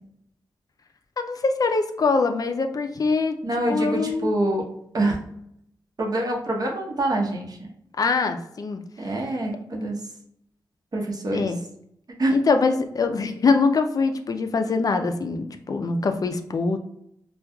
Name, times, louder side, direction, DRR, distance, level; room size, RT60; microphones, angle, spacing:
voice 1, 1.2-3.4 3.7-4.3 8.0-8.8 11.3-11.6 12.3-16.8, left 4 dB, 45° left, 6 dB, 0.4 m, -23 dB
voice 2, 3.4-4.6 4.9-5.2 6.0-7.7 9.0-10.0 10.9-11.5 12.2-12.4, right 1 dB, 50° right, 0 dB, 0.9 m, -25 dB
4.3 x 2.3 x 2.3 m, 0.75 s
cardioid pair, 70°, 8 cm